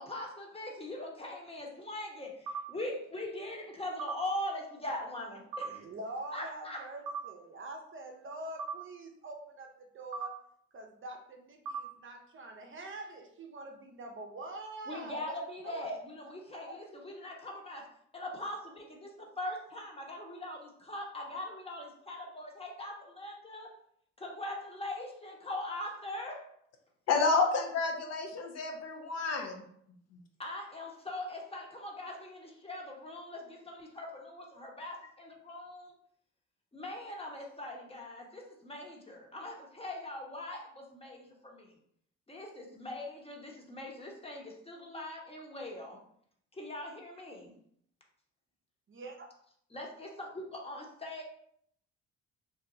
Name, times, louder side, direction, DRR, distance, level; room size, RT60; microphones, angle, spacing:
voice 1, 0.1-5.8 6.3-6.9 14.9-17.9 18.1-23.7 24.2-26.4 30.4-35.9 36.7-41.7 42.3-46.0 46.5-47.5 49.7-51.2, left 1 dB, 20° left, 0 dB, 1.0 m, -41 dB
sound 1, 2.5-2.6 4.0-4.2 5.5-5.7 7.1-7.2 8.6-8.8 10.1-10.3 11.6-11.8, right 5 dB, 85° right, 0.5 m, -37 dB
voice 2, 5.8-10.4 10.7-15.4 15.6-15.9 16.5-16.8 48.9-49.3, right 2 dB, 40° right, 3 dB, 0.6 m, -45 dB
voice 3, 27.1-29.6 30.1-30.2, left 4 dB, 55° left, 3 dB, 0.6 m, -30 dB
2.7 x 2.2 x 3.8 m, 0.67 s
supercardioid pair, 70°, 31 cm